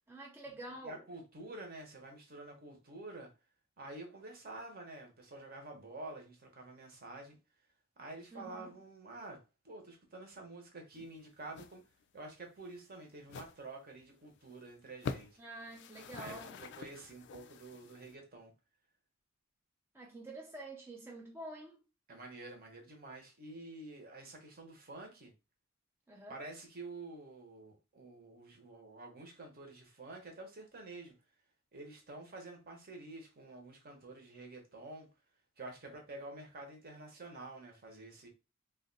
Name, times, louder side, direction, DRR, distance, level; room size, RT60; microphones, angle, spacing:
voice 1, 0.1-1.0 8.3-8.8 15.4-16.6 19.9-21.8 26.1-26.4, right 2 dB, 10° right, 0.4 m, -48 dB
voice 2, 0.8-3.3 3.8-7.4 8.0-11.8 12.1-15.4 16.2-18.5 22.1-25.3 26.3-31.1 31.7-35.1 35.6-38.3, right 2 dB, 45° right, 0.9 m, -49 dB
sound 1, 10.9-11.2 11.5-11.8 12.0-12.2 12.7-12.8 13.2-13.6 14.0-14.1 14.4-14.5 14.9-15.4 15.7-18.1, left 5 dB, 60° left, 0.3 m, -45 dB
2.5 x 2.2 x 3.8 m
head